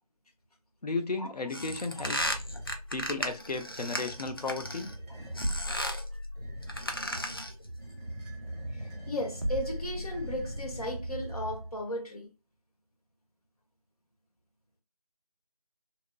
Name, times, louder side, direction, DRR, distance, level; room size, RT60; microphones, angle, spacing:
voice 1, 0.8-2.4 2.9-4.9, left 3 dB, 90° left, 0.6 m, -34 dB
sound 1, 1.5-4.9 5.4-6.1 6.6-7.6, equal, 35° left, 0.4 m, -35 dB
sound 2, 1.5-2.8 3.9-5.6 6.3-11.8, right 1 dB, ahead, 0.8 m, -42 dB
sound 3, 2.2-11.8, equal, 40° right, 0.4 m, -40 dB
voice 2, 8.7-12.3, left 1 dB, 70° left, 1.1 m, -36 dB
2.8 x 2.5 x 2.2 m
figure-of-eight pair, 170°, 20 cm